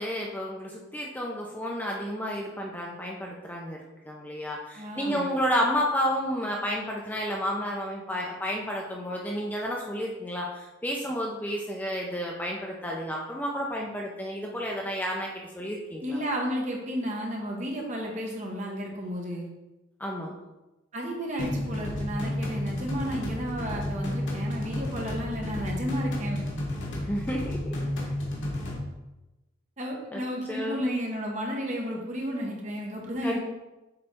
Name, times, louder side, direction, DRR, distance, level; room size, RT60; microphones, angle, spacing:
voice 1, 0.0-3.8 4.1-15.3 15.5-16.2 20.0-20.4 27.1-27.6 30.1-30.2 30.5-30.8 33.2-33.4, equal, 10° left, -2 dB, 0.6 m, -31 dB
voice 2, 4.8-5.3 16.0-19.5 20.9-26.4 29.8-33.4, equal, 35° right, 0 dB, 1.2 m, -32 dB
sound 1, 21.4-28.8, left 1 dB, 85° left, 1.6 m, -32 dB
7.7 x 3.3 x 4.4 m, 1.0 s
head